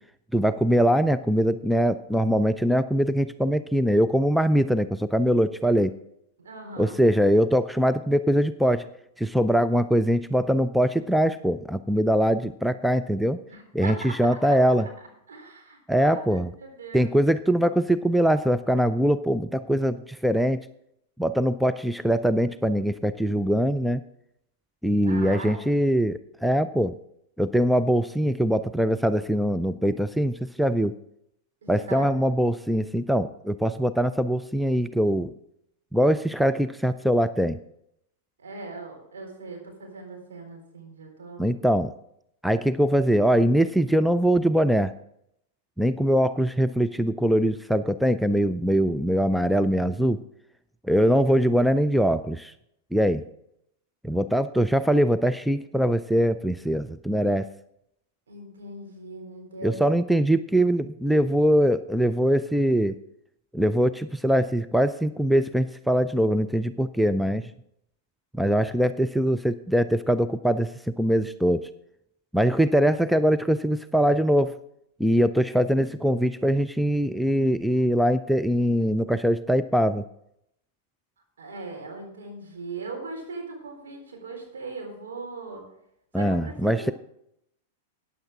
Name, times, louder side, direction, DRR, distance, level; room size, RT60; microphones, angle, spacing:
voice 1, 0.3-5.9 6.8-8.8 9.2-13.4 13.7-14.9 15.9-16.5 16.9-20.6 21.2-24.0 24.8-26.9 27.4-30.9 31.7-35.3 35.9-37.6 41.4-41.9 42.4-44.9 45.8-50.2 50.9-52.5 52.9-53.2 54.0-57.5 59.6-63.0 63.5-67.5 68.3-70.7 71.0-71.6 72.3-74.5 75.0-80.0 86.1-86.9, equal, ahead, 11 dB, 0.4 m, -22 dB
voice 2, 6.4-7.0 13.5-14.9 15.3-16.2 16.6-17.1 25.1-25.7 31.6-32.2 38.4-41.6 58.3-59.8 81.4-85.6 86.1-86.9, right 3 dB, 70° right, 1 dB, 3.9 m, -39 dB
14.5 x 9.6 x 3.7 m, 0.76 s
figure-of-eight pair, 95°, 0 cm